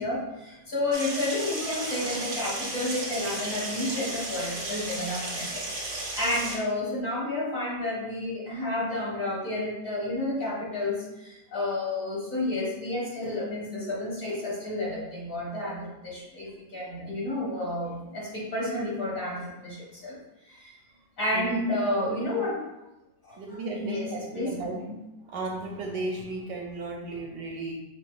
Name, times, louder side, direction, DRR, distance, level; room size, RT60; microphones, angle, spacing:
voice 1, 0.0-5.5 5.9-20.2 20.5-20.7 21.2-22.6 23.2-24.9, left 1 dB, 45° left, -6 dB, 1.8 m, -31 dB
sound 1, 0.9-6.6, right 2 dB, 40° right, 1.0 m, -34 dB
voice 2, 21.3-22.3 23.4-24.8 25.2-27.7, right 2 dB, 75° right, -1 dB, 1.1 m, -35 dB
5.1 x 4.2 x 2.3 m, 0.95 s
omnidirectional pair, 2.1 m